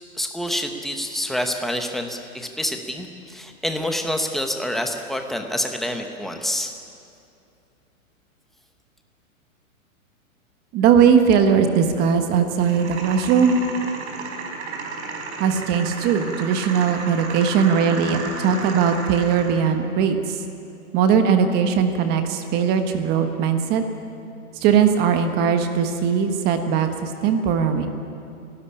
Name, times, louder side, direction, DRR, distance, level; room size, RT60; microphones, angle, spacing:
voice 1, 0.1-6.7, equal, ahead, 4 dB, 0.9 m, -27 dB
voice 2, 10.7-13.6 15.4-20.4 20.9-23.8 24.6-27.9, right 7 dB, 25° right, 7 dB, 1.3 m, -19 dB
sound 1, 12.6-19.6, right 4 dB, 50° right, 4.8 m, -33 dB
30.0 x 13.0 x 9.9 m, 2.6 s
hypercardioid pair, 160°, 42 cm